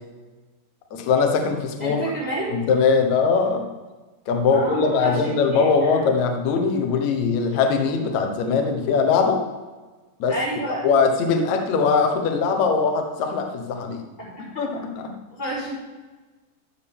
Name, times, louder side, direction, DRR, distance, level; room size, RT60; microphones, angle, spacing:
voice 1, 0.9-2.0 2.5-3.6 4.3-9.4 10.2-10.4 10.7-14.0 14.4-15.1, left 5 dB, 75° left, 4 dB, 1.6 m, -21 dB
voice 2, 1.8-2.5 4.5-6.0 10.3-10.9 14.2-14.4 15.3-15.7, right 1 dB, 5° right, -8 dB, 3.0 m, -29 dB
14.0 x 7.1 x 3.6 m, 1.3 s
omnidirectional pair, 5.1 m